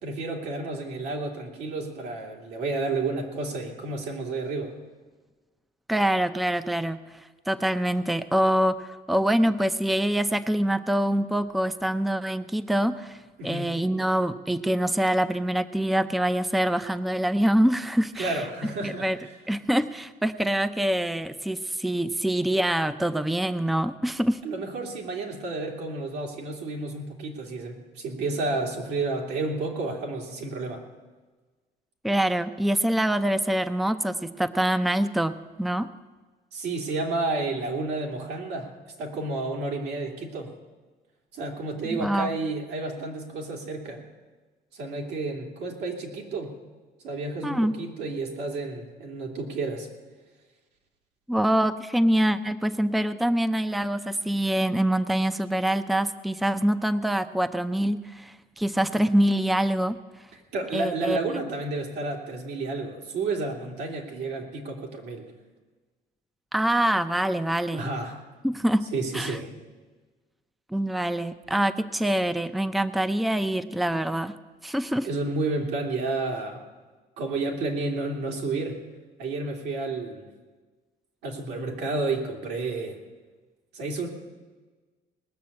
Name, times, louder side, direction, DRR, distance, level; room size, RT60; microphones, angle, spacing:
voice 1, 0.0-4.7 13.4-13.7 18.2-19.3 24.4-30.8 36.5-38.7 39.0-40.5 41.3-44.0 44.7-46.5 47.0-49.9 60.3-65.3 67.7-68.2 68.9-69.5 75.0-76.6 77.2-78.8 79.2-80.3 81.2-83.0 83.7-84.1, right 3 dB, 80° right, 1 dB, 2.8 m, -31 dB
voice 2, 5.9-7.0 7.5-13.2 13.4-18.4 18.8-19.2 19.5-24.4 32.0-35.9 41.9-42.4 47.4-47.8 51.3-60.0 60.7-61.2 66.5-67.9 68.4-68.9 69.1-69.4 70.7-74.4 74.6-75.1, right 1 dB, ahead, 11 dB, 0.5 m, -25 dB
19.5 x 6.7 x 8.5 m, 1.3 s
cardioid pair, 110°, 17 cm